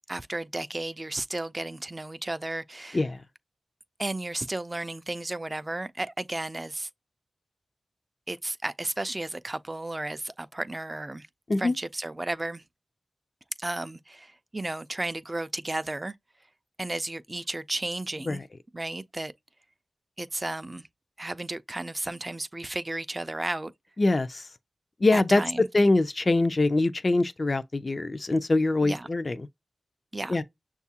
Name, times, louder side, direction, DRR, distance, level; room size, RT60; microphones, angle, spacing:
voice 1, 0.1-3.1 4.0-6.9 8.3-11.3 11.6-12.6 13.6-16.1 16.8-18.4 18.7-19.3 20.2-20.8 21.2-23.7 25.1-25.7 28.8-29.1 30.1-30.4, right 2 dB, 30° right, 0.3 m, -33 dB
voice 2, 24.0-24.4 25.0-25.4 25.7-29.4 30.3-30.4, left 2 dB, 45° left, 0.4 m, -23 dB
6.4 x 2.4 x 2.7 m
cardioid pair, 50°, 0 cm